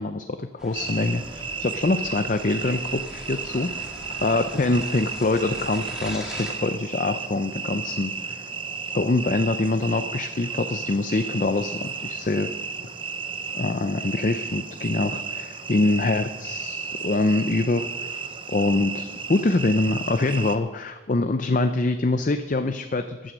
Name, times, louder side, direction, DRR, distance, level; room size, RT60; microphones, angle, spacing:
voice 1, 0.0-3.9 4.2-8.4 8.9-12.5 13.5-17.9 18.5-23.3, left 2 dB, 40° left, 8 dB, 0.5 m, -24 dB
sound 1, 0.6-6.5, equal, 5° right, 2.1 m, -41 dB
sound 2, 0.7-20.6, right 5 dB, 25° right, 0.6 m, -34 dB
14.5 x 9.0 x 6.3 m, 1.2 s
head